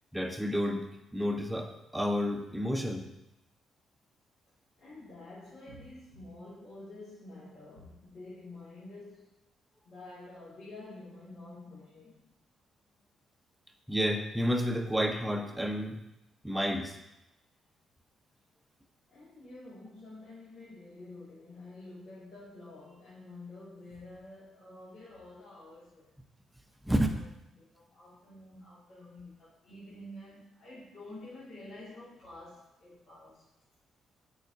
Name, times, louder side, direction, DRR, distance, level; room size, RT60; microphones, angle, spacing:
voice 1, 0.1-3.1 13.9-16.0 16.4-17.0 26.8-27.1, equal, 5° right, 0.8 m, -30 dB
voice 2, 4.8-9.3 9.8-12.3 19.1-26.1 27.1-27.2 27.5-33.5, left 2 dB, 65° left, 2.3 m, -49 dB
8.6 x 4.8 x 2.8 m
cardioid pair, 90°, 0 cm